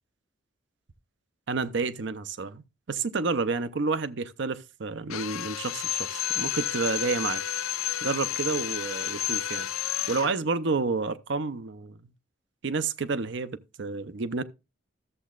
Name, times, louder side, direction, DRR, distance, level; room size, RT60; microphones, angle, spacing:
voice 1, 1.5-7.4 8.0-9.7 10.1-12.0 12.6-14.4, right 4 dB, 55° right, 0.6 m, -30 dB
Drill, 5.1-10.4, left 11 dB, 85° left, 0.6 m, -31 dB
13.5 x 7.4 x 2.4 m
head